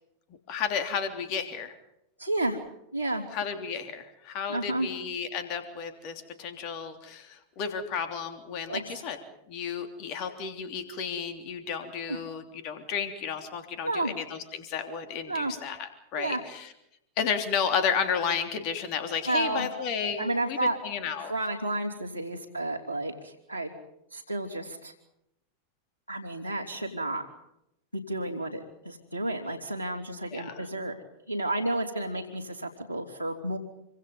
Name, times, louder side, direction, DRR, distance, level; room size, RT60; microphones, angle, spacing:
voice 1, 0.5-1.8 3.3-9.2 9.5-16.7 17.2-20.6 20.8-21.3 30.3-30.6, left 7 dB, 40° left, 7 dB, 3.4 m, -32 dB
voice 2, 2.2-2.6 2.9-3.2 4.5-4.9 8.7-8.9 12.1-12.2 13.8-14.1 15.3-15.5 16.2-16.4 19.2-19.8 20.2-20.8 21.2-23.7 24.1-24.9 26.1-27.2 27.9-30.9 31.3-33.6, right 2 dB, 85° left, 0 dB, 3.2 m, -31 dB
27.5 x 25.5 x 5.5 m, 0.81 s
figure-of-eight pair, 90°, 0 cm